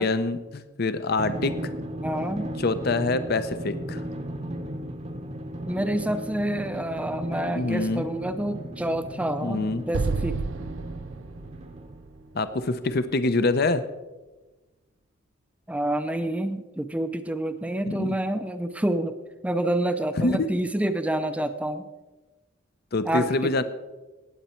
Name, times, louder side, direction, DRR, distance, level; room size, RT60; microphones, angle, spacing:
voice 1, 0.0-1.7 2.6-4.0 7.5-8.1 9.4-9.8 12.3-13.8 17.9-18.2 20.2-20.5 22.9-23.6, left 3 dB, 50° left, 12 dB, 0.7 m, -25 dB
Drum, 1.2-12.2, right 1 dB, 35° right, 0.9 m, -36 dB
voice 2, 2.0-2.5 5.7-10.4 15.7-19.1 19.4-21.8 23.0-23.3, right 1 dB, 5° right, 8 dB, 0.5 m, -28 dB
Explosion, 9.9-13.2, right 4 dB, 70° right, 0.5 m, -32 dB
18.0 x 8.2 x 4.4 m, 1.2 s
head